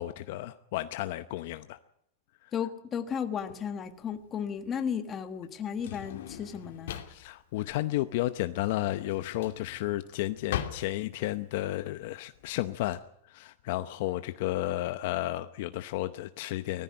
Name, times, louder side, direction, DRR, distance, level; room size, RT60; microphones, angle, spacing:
voice 1, 0.0-1.8 2.4-2.5 7.1-16.8, left 16 dB, 50° left, 11 dB, 0.8 m, -32 dB
voice 2, 2.5-7.0, left 7 dB, 20° left, 8 dB, 1.5 m, -34 dB
Drawer open or close, 3.4-13.0, left 11 dB, 70° left, 2.7 m, -41 dB
19.0 x 14.5 x 9.7 m, 0.77 s
supercardioid pair, 165°, 0 cm